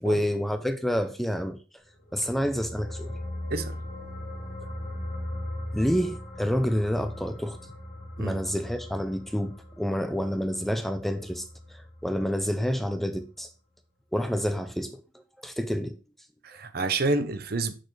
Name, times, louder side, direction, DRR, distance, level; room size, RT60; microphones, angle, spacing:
voice 1, 0.0-1.6 2.1-3.2 5.7-7.6 8.2-11.4 11.7-13.5 14.1-15.0 15.4-15.9, equal, ahead, 0.5 m, -28 dB
sound 1, 2.0-12.7 13.0-13.2, left 1 dB, 45° left, 1.7 m, -39 dB
voice 2, 16.4-17.7, right 3 dB, 55° right, 0.7 m, -28 dB
6.8 x 6.2 x 3.2 m
head